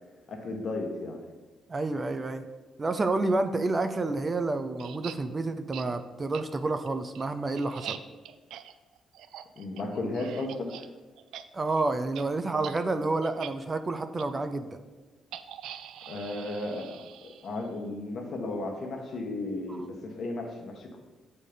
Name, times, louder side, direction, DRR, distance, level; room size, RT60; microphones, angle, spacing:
voice 1, 0.3-1.2 9.6-10.8 16.1-16.9 17.4-21.0, left 2 dB, 60° left, 2 dB, 1.4 m, -34 dB
voice 2, 1.7-2.5 2.8-8.0 11.5-14.8 19.8-19.9, right 2 dB, 30° right, 8 dB, 0.5 m, -29 dB
sound 1, 4.8-5.2 5.7-5.9 6.3-6.4 6.9-10.9 11.2-11.4 11.7-11.8 12.1-12.2 12.6-12.8 13.2-13.5 14.2-14.3 15.3-17.7, right 10 dB, 85° right, 0.4 m, -43 dB
7.4 x 4.2 x 5.1 m, 1.2 s
cardioid pair, 90°, 0 cm